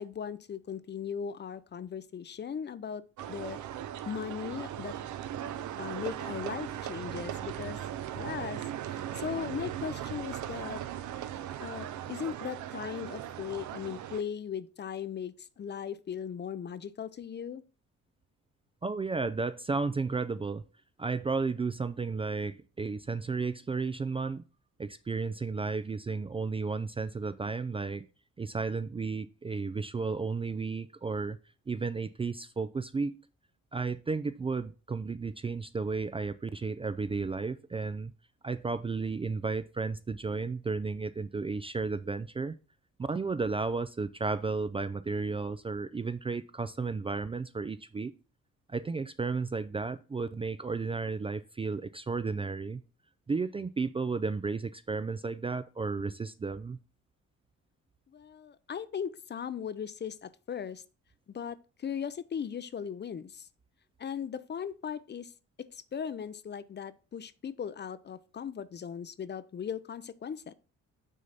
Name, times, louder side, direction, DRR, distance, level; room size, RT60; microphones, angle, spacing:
voice 1, 0.0-3.0 3.3-3.6 4.1-4.9 5.8-7.8 8.1-10.8 11.6-17.6 58.1-60.8 61.3-63.5 64.0-65.3 65.6-70.5, left 7 dB, 35° left, 0.5 m, -38 dB
sound 1, 3.2-14.2, right 11 dB, 75° right, 0.7 m, -38 dB
voice 2, 18.8-20.6 21.0-24.4 24.8-28.1 28.4-31.4 31.7-33.2 33.7-38.1 38.4-42.5 43.1-48.1 48.7-52.8 53.3-56.8, right 4 dB, 20° right, 0.4 m, -33 dB
6.4 x 3.9 x 5.7 m
cardioid pair, 90°, 30 cm